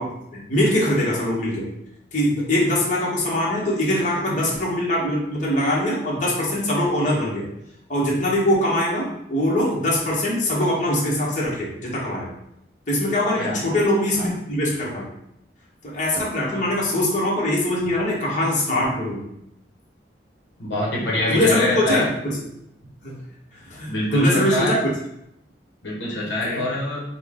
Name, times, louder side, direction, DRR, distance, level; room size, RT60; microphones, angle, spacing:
voice 1, 0.0-1.7 2.1-7.5 7.9-12.3 12.9-15.1 15.8-19.2 21.3-22.4 23.0-23.2 23.7-24.8 26.4-26.6, left 1 dB, 45° left, -5 dB, 1.2 m, -22 dB
voice 2, 13.4-13.8 14.1-14.3 20.6-22.1 23.9-24.8 25.8-27.0, left 1 dB, 75° left, -4 dB, 0.9 m, -24 dB
5.4 x 2.2 x 3.6 m, 0.78 s
head